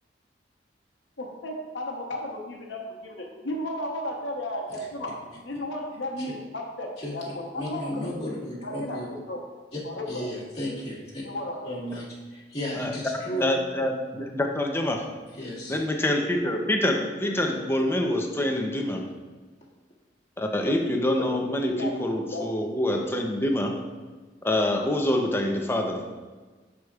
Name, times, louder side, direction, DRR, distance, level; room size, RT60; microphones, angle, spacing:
voice 1, 1.2-5.1 5.4-8.1 8.6-9.0 9.3-9.4 9.8-10.4 11.2-11.8 21.2-21.3 21.7-21.9 22.3-22.4, left 1 dB, 85° left, -1 dB, 0.9 m, -34 dB
voice 2, 7.5-9.1 9.7-9.8 10.1-11.2 11.6-13.4 15.4-15.8, equal, 35° left, -7 dB, 1.9 m, -34 dB
voice 3, 13.4-15.0 15.7-19.0 20.4-23.7 24.4-26.1, left 1 dB, 15° left, 2 dB, 0.6 m, -26 dB
10.5 x 4.9 x 2.4 m, 1.3 s
head